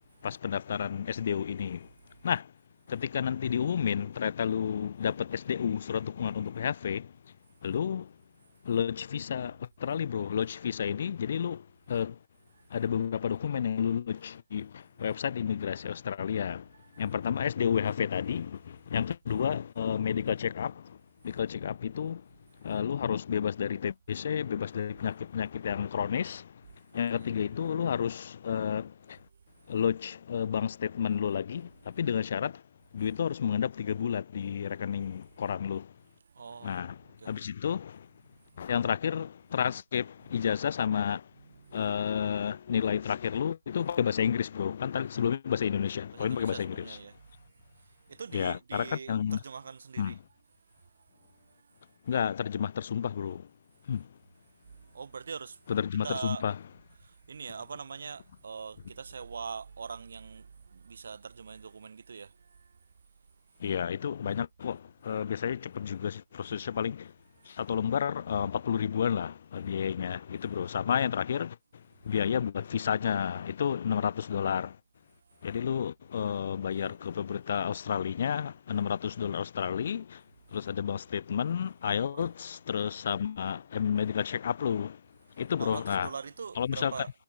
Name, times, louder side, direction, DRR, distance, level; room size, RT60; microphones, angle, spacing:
voice 1, 0.2-1.9 2.2-2.5 2.9-7.1 7.6-8.1 8.6-12.2 12.7-16.7 17.0-21.0 21.2-22.2 22.6-26.5 26.9-29.2 29.7-32.6 32.9-35.9 36.6-37.0 37.2-38.1 38.6-41.2 41.7-47.0 48.3-49.4 50.0-50.2 52.1-53.5 53.9-54.1 55.7-56.6 63.6-67.1 67.5-71.6 72.0-74.8 75.4-80.2 80.5-85.0 85.4-86.1 86.6-86.9, left 8 dB, 40° left, 0.3 m, -31 dB
voice 2, 36.3-36.8 37.2-37.5 38.5-38.7 41.5-41.8 46.1-47.3 47.7-50.2 50.8-51.9 54.7-55.6 56.0-56.5 57.0-62.8 67.4-67.6 75.3-75.4 76.8-77.0 82.1-82.3 85.6-87.1, right 5 dB, 55° right, 0.6 m, -43 dB
hypercardioid pair, 160°, 0 cm